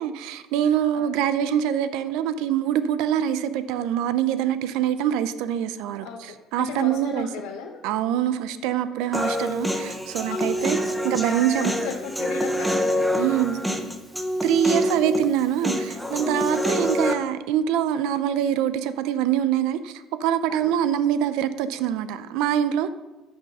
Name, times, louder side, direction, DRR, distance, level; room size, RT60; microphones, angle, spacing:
voice 1, 0.0-7.3 7.8-10.8 11.0-11.7 13.2-13.8 14.4-22.9, right 10 dB, 80° right, 12 dB, 0.6 m, -24 dB
voice 2, 6.0-7.8 10.3-11.0 11.4-13.4 16.5-16.7 20.5-20.7, left 7 dB, 90° left, 1 dB, 1.0 m, -37 dB
Human voice, 9.1-17.1, equal, 5° right, 0.9 m, -26 dB
12.0 x 6.0 x 5.5 m, 1.1 s
cardioid pair, 125°, 0 cm